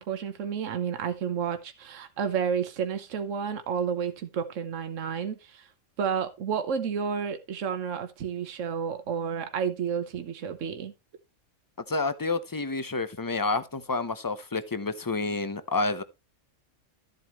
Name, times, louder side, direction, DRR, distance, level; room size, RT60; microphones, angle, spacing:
voice 1, 0.0-5.7 6.0-10.9, right 7 dB, 75° right, 1.4 m, -31 dB
voice 2, 11.9-16.0, left 3 dB, 20° left, 0.7 m, -29 dB
13.0 x 7.8 x 3.1 m
omnidirectional pair, 1.3 m